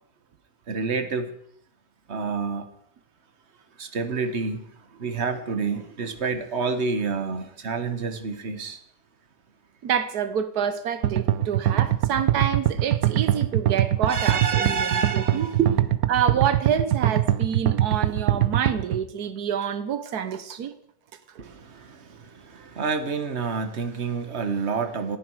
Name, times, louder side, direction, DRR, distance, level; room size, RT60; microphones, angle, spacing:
voice 1, 0.7-1.3 2.1-2.6 3.8-4.7 5.0-8.8 14.0-15.8 21.4-25.2, right 5 dB, 45° right, 1.7 m, -28 dB
voice 2, 9.8-15.5 16.1-20.7 21.3-21.4, right 8 dB, 85° right, 1.5 m, -27 dB
sound 1, 11.0-19.0, right 12 dB, 70° right, 1.2 m, -22 dB
29.0 x 10.0 x 4.8 m
omnidirectional pair, 1.6 m